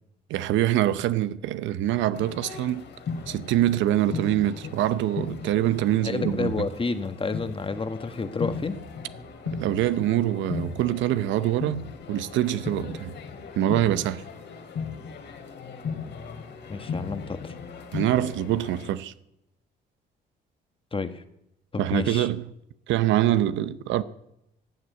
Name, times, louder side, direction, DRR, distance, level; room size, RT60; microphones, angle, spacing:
voice 1, 0.3-2.8 3.3-6.5 9.5-13.1 13.6-14.2 17.9-19.1 21.8-22.5 22.9-24.0, right 13 dB, 85° right, 0.8 m, -24 dB
Distant marching band, 2.1-18.9, left 5 dB, 65° left, 2.6 m, -37 dB
voice 2, 6.0-8.8 16.7-17.6 20.9-21.2 21.7-22.3, left 4 dB, 30° left, 1.4 m, -30 dB
15.0 x 7.8 x 9.4 m
cardioid pair, 85°, 19 cm